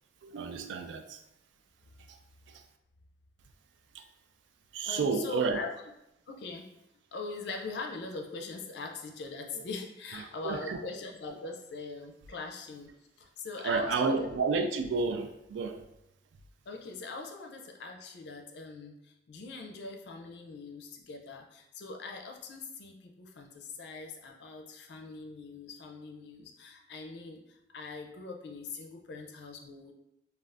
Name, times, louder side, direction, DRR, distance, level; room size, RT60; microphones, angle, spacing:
voice 1, 0.2-1.2 2.1-2.2 2.5-2.6 3.9-4.1 4.7-5.6 9.6-9.7 10.1-10.8 13.6-15.8, right 4 dB, 90° right, 6 dB, 0.3 m, -31 dB
voice 2, 4.8-5.7 6.3-6.7 7.1-12.9 13.2-14.3 16.7-29.9, left 3 dB, 65° left, 3 dB, 0.4 m, -42 dB
2.4 x 2.3 x 3.3 m, 0.85 s
head